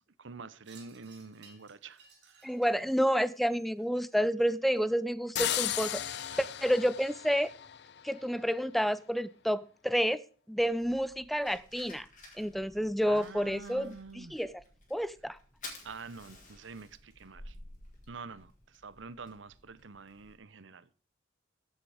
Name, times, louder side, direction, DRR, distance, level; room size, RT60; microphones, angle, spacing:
voice 1, 0.2-2.4 6.3-6.4 13.1-14.4 15.8-17.6 18.1-20.9, right 4 dB, 85° right, 0.8 m, -47 dB
Wind chime, 0.6-5.3, right 5 dB, 65° right, 5.7 m, -61 dB
voice 2, 2.4-6.0 6.4-7.5 8.0-10.2 10.5-12.1 12.4-14.6 14.9-15.4, equal, ahead, 0.4 m, -29 dB
sound 1, 5.3-8.2, left 11 dB, 60° left, 0.5 m, -35 dB
Fire, 10.6-20.3, left 2 dB, 40° left, 4.3 m, -53 dB
15.0 x 8.1 x 5.0 m
head